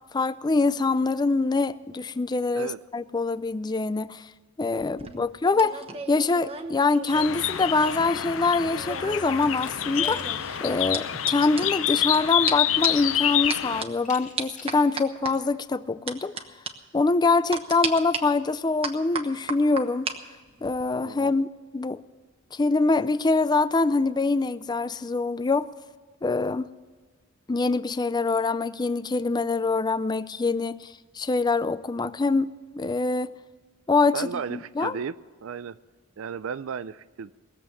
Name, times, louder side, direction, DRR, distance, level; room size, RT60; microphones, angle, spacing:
voice 1, 0.1-4.3 4.6-5.8 6.1-10.3 10.6-16.4 16.9-20.1 20.6-21.5 21.7-22.0 22.5-25.7 26.2-26.7 27.5-33.4 33.9-35.0, left 3 dB, 20° left, 0.4 m, -24 dB
sound 1, 4.8-8.2 8.5-12.2 12.5-12.6 12.8-13.1 13.5-13.9 14.4-15.3 16.1-16.4 16.7-16.8 17.5-18.2 18.8-20.2 20.5-20.8, right 5 dB, 30° right, 1.1 m, -34 dB
sound 2, 7.1-13.8, left 11 dB, 70° left, 0.6 m, -27 dB
Glass, 9.6-10.7 11.1-11.2 12.3-12.4 12.9-13.3 14.1-14.9, left 4 dB, 40° left, 1.8 m, -45 dB
voice 2, 21.0-21.3 34.1-35.8 36.2-37.3, right 6 dB, 75° right, 0.4 m, -35 dB
19.5 x 7.6 x 8.3 m
head